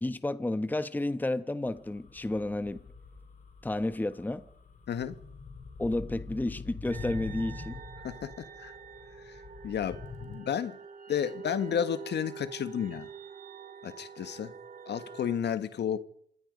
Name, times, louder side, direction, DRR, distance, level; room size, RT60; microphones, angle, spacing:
voice 1, 0.0-2.8 3.6-4.4 5.8-7.8, left 2 dB, 10° left, 1.1 m, -31 dB
sound 1, 1.6-10.3, left 4 dB, 40° left, 4.6 m, -44 dB
voice 2, 4.9-5.2 8.0-8.7 9.2-10.8 11.1-13.1 13.8-14.5 14.9-16.0, left 8 dB, 60° left, 1.6 m, -32 dB
sound 2, 6.9-15.4, right 7 dB, 45° right, 3.1 m, -46 dB
27.0 x 22.0 x 5.3 m
cardioid pair, 90°, 20 cm